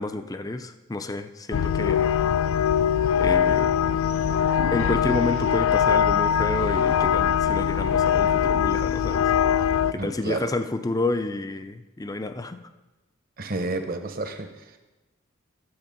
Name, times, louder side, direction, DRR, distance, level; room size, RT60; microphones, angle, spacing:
voice 1, 0.0-2.1 3.2-3.7 4.7-9.3 9.9-12.6, left 2 dB, 20° left, 10 dB, 0.5 m, -30 dB
sound 1, 1.5-9.9, left 8 dB, 90° left, 0.4 m, -22 dB
voice 2, 9.9-10.5 13.4-14.8, right 2 dB, 45° right, 7 dB, 1.0 m, -31 dB
11.5 x 8.1 x 5.3 m, 1.1 s
head